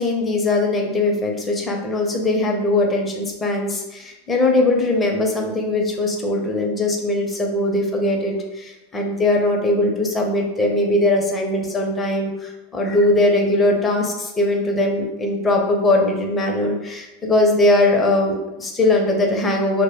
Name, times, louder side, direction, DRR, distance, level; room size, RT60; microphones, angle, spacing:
voice 1, 0.0-19.8, left 2 dB, 20° left, 1 dB, 0.6 m, -20 dB
2.1 x 2.1 x 3.5 m, 0.98 s
hypercardioid pair, 105°, 0 cm